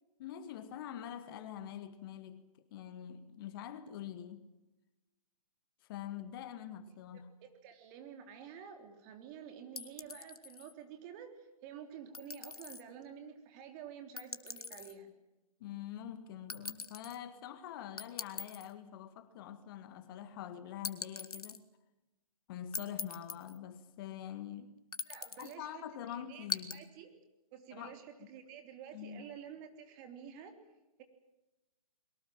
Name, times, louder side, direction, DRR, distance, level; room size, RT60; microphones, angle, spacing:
voice 1, 0.2-2.4 2.7-4.5 5.8-7.4 15.6-21.6 22.5-24.7 25.4-26.9 27.7-28.3 28.9-29.4, left 10 dB, 40° left, 1.8 m, -45 dB
voice 2, 7.1-15.1 25.1-27.1 27.5-30.6, right 8 dB, 30° right, 3.3 m, -50 dB
sound 1, 9.8-10.7 12.1-12.8 14.2-15.0 16.5-17.2 18.0-18.7 20.8-21.6 22.7-23.6 24.9-25.5 26.5-26.8, left 5 dB, 85° left, 1.9 m, -42 dB
22.5 x 19.0 x 9.1 m
hypercardioid pair, 145°, 19 cm